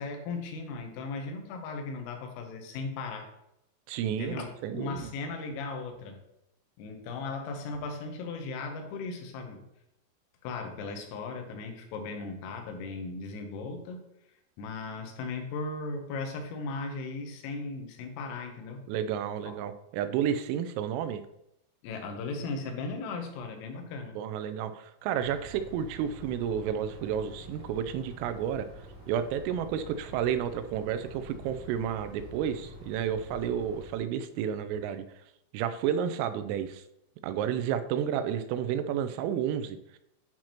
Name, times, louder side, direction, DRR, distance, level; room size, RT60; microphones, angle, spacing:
voice 1, 0.0-3.3 4.1-6.2 6.8-9.6 10.4-14.0 14.6-18.8 19.4-19.5 21.8-24.2, left 3 dB, 85° left, 4 dB, 3.6 m, -37 dB
voice 2, 3.9-5.1 18.9-21.2 24.2-28.7 29.1-35.0 35.5-36.8 37.2-39.8, right 9 dB, 90° right, 11 dB, 3.2 m, -31 dB
sound 1, 25.2-34.0, equal, 75° right, 0.8 m, -47 dB
10.5 x 4.3 x 3.0 m, 0.83 s
omnidirectional pair, 5.8 m